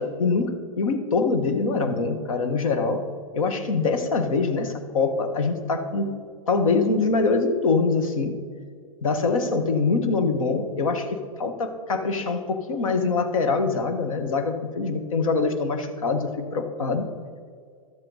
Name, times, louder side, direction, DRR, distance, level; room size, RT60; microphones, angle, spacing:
voice 1, 0.0-3.0 3.3-6.2 6.5-8.4 9.0-17.1, left 4 dB, 70° left, 8 dB, 1.3 m, -24 dB
12.5 x 7.7 x 4.0 m, 2.1 s
hypercardioid pair, 105°, 18 cm